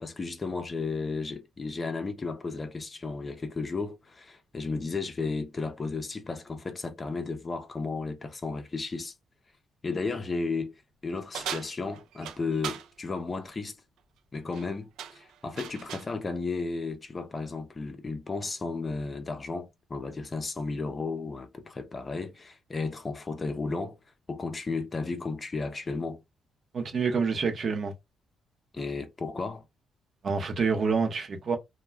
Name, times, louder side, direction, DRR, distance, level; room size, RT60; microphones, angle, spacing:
voice 1, 0.0-9.1 9.8-10.7 11.0-13.8 14.3-24.0 24.3-26.2 28.7-29.6, left 3 dB, 30° left, 0.5 m, -34 dB
sound 1, 11.3-12.9 14.3-14.7 15.0-16.1, right 8 dB, 85° right, 0.3 m, -38 dB
voice 2, 26.7-27.9 30.2-31.6, right 5 dB, 50° right, 0.7 m, -27 dB
2.2 x 2.2 x 3.2 m
cardioid pair, 90°, 0 cm